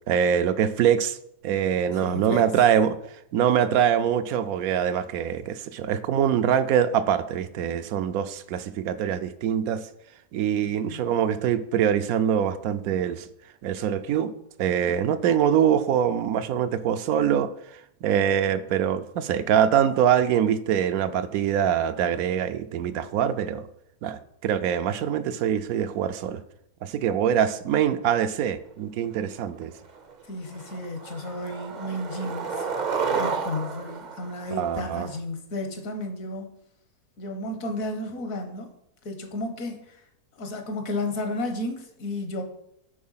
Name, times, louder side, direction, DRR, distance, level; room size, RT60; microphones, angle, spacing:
voice 1, 0.1-1.2 1.4-3.0 3.3-9.8 10.3-13.3 13.6-14.3 14.6-17.5 18.0-23.7 24.0-26.4 26.8-29.7 34.5-35.1, right 9 dB, 75° right, 12 dB, 1.0 m, -24 dB
voice 2, 1.9-2.4 10.6-11.2 30.2-32.7 33.1-36.5 37.2-38.7 39.0-40.0 40.3-42.4, left 1 dB, 65° left, 5 dB, 1.6 m, -33 dB
Skateboard, 29.4-29.5 29.9-30.2 30.5-35.2, right 5 dB, 45° right, 0.6 m, -31 dB
8.6 x 4.3 x 5.6 m, 0.75 s
omnidirectional pair, 1.6 m